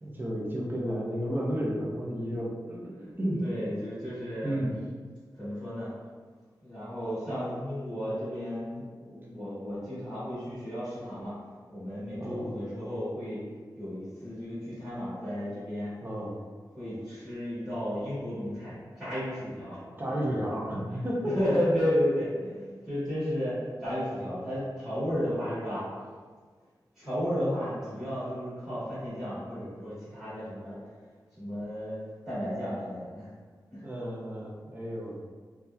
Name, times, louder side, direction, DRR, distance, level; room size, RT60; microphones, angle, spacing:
voice 1, 0.0-3.4 4.4-4.8 12.2-12.5 16.0-16.4 20.0-21.3 25.1-25.4 33.8-35.2, equal, 25° right, -4 dB, 0.5 m, -32 dB
voice 2, 3.4-4.6 5.3-5.9 6.6-11.4 11.7-13.4 13.8-15.9 16.7-19.8 21.3-25.9 26.9-30.8 31.4-33.3 33.7-33.8, equal, 5° right, -13 dB, 1.2 m, -33 dB
2.8 x 2.2 x 2.2 m, 1.5 s
wide cardioid pair, 120°, 8 cm